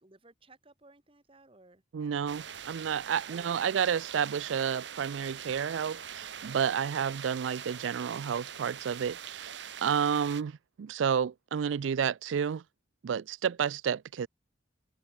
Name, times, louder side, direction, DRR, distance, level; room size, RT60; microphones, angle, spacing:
voice 1, 0.0-1.8 3.3-3.8, right 2 dB, 30° right, 1.7 m, -58 dB
voice 2, 1.9-12.6 13.0-14.3, right 7 dB, 90° right, 0.4 m, -31 dB
sound 1, 2.3-10.4, right 8 dB, 70° right, 1.1 m, -43 dB
head